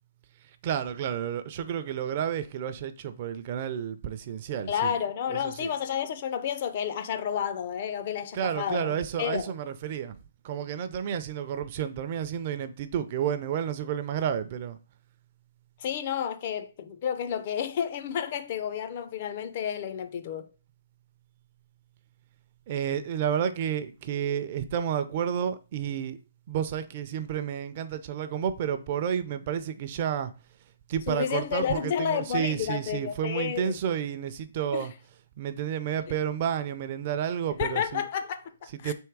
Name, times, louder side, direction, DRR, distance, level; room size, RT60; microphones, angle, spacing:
voice 1, 0.6-4.9 5.3-5.7 8.3-10.2 10.4-14.8 22.7-26.2 26.5-30.3 30.9-34.9 35.4-38.0 38.6-38.9, right 9 dB, 40° right, 0.4 m, -31 dB
voice 2, 4.7-9.5 15.8-20.5 31.1-33.8 34.7-34.9 36.1-36.2 37.6-38.9, left 8 dB, 45° left, 0.5 m, -31 dB
3.5 x 3.0 x 4.6 m
hypercardioid pair, 155°, 0 cm